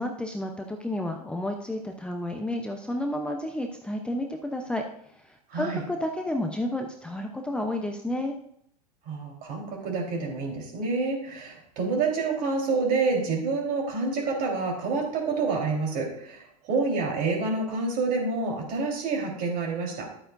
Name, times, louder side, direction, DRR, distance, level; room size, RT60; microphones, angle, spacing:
voice 1, 0.0-4.8 5.1-8.4, left 1 dB, 5° left, 3 dB, 0.7 m, -31 dB
voice 2, 5.5-5.8 9.1-20.1, right 4 dB, 45° right, -1 dB, 3.8 m, -28 dB
11.5 x 8.7 x 2.6 m, 0.70 s
hypercardioid pair, 105°, 20 cm